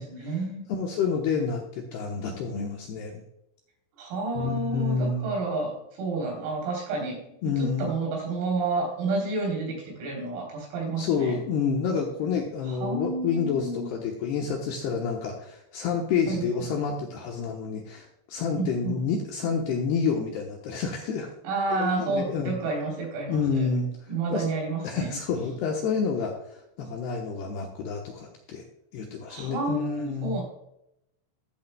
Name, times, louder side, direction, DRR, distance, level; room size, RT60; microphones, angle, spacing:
voice 1, 0.0-0.7 4.0-7.2 7.5-11.4 12.7-13.9 16.3-16.7 18.6-19.0 21.4-23.7 24.1-25.2 29.3-30.4, right 3 dB, 85° right, 0 dB, 6.3 m, -30 dB
voice 2, 0.7-3.2 4.4-5.3 7.4-7.9 10.9-21.3 21.7-22.5 23.3-23.9 24.3-24.5 24.8-26.3 26.8-28.6 28.9-30.4, left 5 dB, 75° left, 1 dB, 2.5 m, -29 dB
14.0 x 8.7 x 2.2 m, 0.80 s
omnidirectional pair, 5.9 m